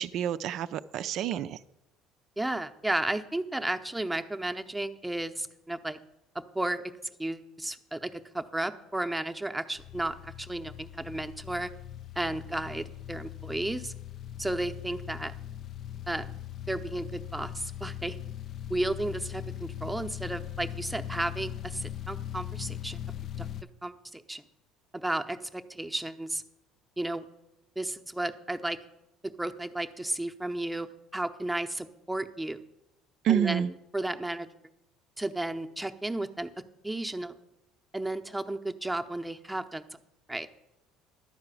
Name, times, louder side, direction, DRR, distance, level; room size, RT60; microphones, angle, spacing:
voice 1, 0.0-1.6 33.2-33.7, right 10 dB, 60° right, 13 dB, 0.4 m, -28 dB
voice 2, 2.4-6.0 6.3-6.9 7.2-11.7 12.2-13.9 14.4-15.3 16.1-16.3 16.7-18.2 18.7-23.0 23.4-23.5 23.8-24.4 24.9-26.4 27.0-27.2 27.8-28.8 29.2-30.9 31.1-32.6 33.3-33.7 33.9-34.5 35.2-36.5 36.8-37.4 37.9-39.8 40.3-40.5, right 1 dB, 5° right, 6 dB, 0.7 m, -33 dB
sound 1, 9.8-23.6, left 11 dB, 50° left, 0.3 m, -40 dB
11.5 x 4.8 x 8.3 m, 0.90 s
supercardioid pair, 80°, 0 cm